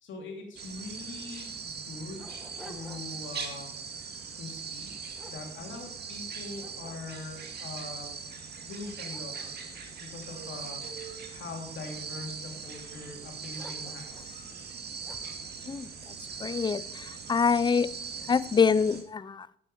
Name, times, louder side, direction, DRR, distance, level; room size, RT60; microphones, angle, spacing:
voice 1, 0.0-2.3 2.6-3.7 4.4-4.9 5.3-9.5 10.0-10.8 11.1-14.5, left 3 dB, 70° left, 1 dB, 3.0 m, -42 dB
sound 1, 0.5-19.0, right 5 dB, 55° right, 2.2 m, -41 dB
Dog, 1.0-1.1 1.7-3.3 3.8-4.1 4.7-6.2 6.6-7.5 8.1-8.2 8.7-11.0 11.6-12.3 13.6-14.4 15.0-15.4, left 1 dB, ahead, 1.7 m, -53 dB
voice 2, 16.4-17.9 18.3-19.5, left 5 dB, 20° left, 19 dB, 0.4 m, -25 dB
9.9 x 8.6 x 5.4 m, 0.73 s
cardioid pair, 90°, 20 cm